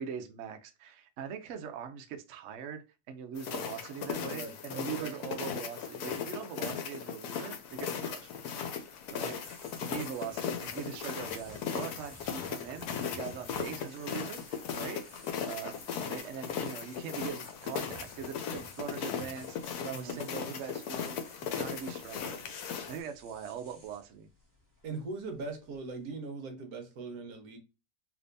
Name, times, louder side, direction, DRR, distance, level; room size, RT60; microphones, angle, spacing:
voice 1, 0.0-8.3 9.1-9.4 9.8-15.0 15.4-22.5 22.9-24.3, right 7 dB, 80° right, 0.6 m, -42 dB
sound 1, 3.4-23.0, left 7 dB, 70° left, 1.1 m, -38 dB
voice 2, 4.3-5.2 9.7-10.0 19.9-20.2 24.8-27.6, right 3 dB, 65° right, 1.2 m, -41 dB
sound 2, 7.6-26.0, equal, 15° right, 1.0 m, -56 dB
3.4 x 2.8 x 2.6 m
omnidirectional pair, 1.8 m